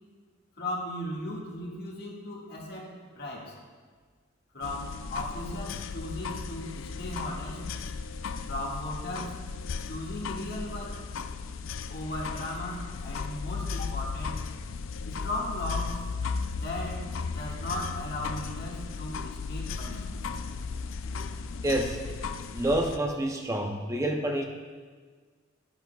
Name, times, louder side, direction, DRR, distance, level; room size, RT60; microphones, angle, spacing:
voice 1, 0.6-3.6 4.5-7.7 8.5-9.4 9.9-11.0 11.9-14.4 15.0-16.0 16.5-17.1 17.3-20.3, left 1 dB, 55° left, -3 dB, 1.8 m, -37 dB
sound 1, 4.6-23.0, left 5 dB, 85° left, 0.4 m, -36 dB
voice 2, 21.6-22.0 22.5-24.4, right 1 dB, 15° right, 2 dB, 0.6 m, -28 dB
11.5 x 10.5 x 2.3 m, 1.6 s
head